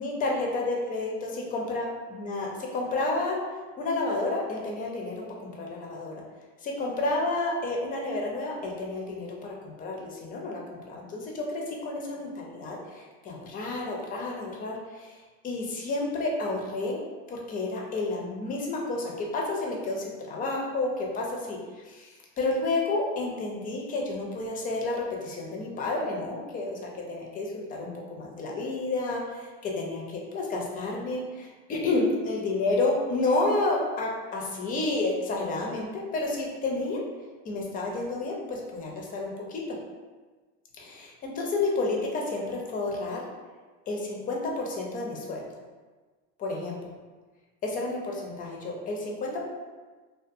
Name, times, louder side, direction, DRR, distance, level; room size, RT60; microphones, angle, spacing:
voice 1, 0.0-3.4 3.8-6.2 6.6-15.2 15.4-17.0 17.3-37.0 37.5-39.8 40.7-43.2 43.9-45.4 46.4-46.8 47.6-49.4, left 2 dB, 25° left, -1 dB, 0.4 m, -30 dB
2.4 x 2.2 x 2.6 m, 1.3 s
supercardioid pair, 130°, 33 cm